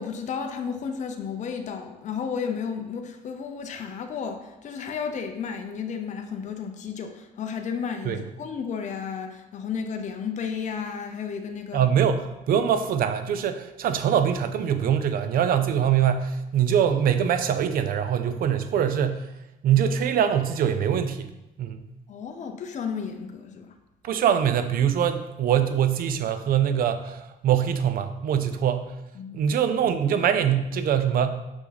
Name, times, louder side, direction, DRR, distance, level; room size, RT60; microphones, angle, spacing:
voice 1, 0.0-11.9 22.1-23.7 29.1-29.4, left 6 dB, 45° left, 5 dB, 0.7 m, -33 dB
voice 2, 11.7-19.3 19.6-21.3 21.6-21.8 24.0-28.9 29.3-31.3, right 8 dB, 60° right, 10 dB, 0.6 m, -23 dB
5.9 x 5.6 x 4.0 m, 0.96 s
cardioid pair, 110°, 17 cm